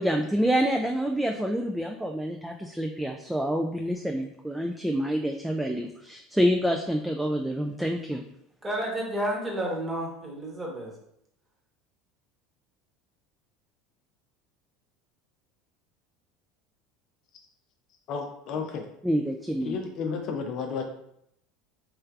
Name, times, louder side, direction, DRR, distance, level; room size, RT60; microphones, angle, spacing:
voice 1, 0.0-8.2 19.0-19.8, equal, 5° right, 2 dB, 0.3 m, -27 dB
voice 2, 8.6-10.9, right 1 dB, 20° right, -2 dB, 1.1 m, -31 dB
voice 3, 18.1-18.8 19.6-20.8, left 5 dB, 55° left, 4 dB, 0.5 m, -32 dB
3.3 x 3.2 x 2.4 m, 0.74 s
hypercardioid pair, 75°, 0 cm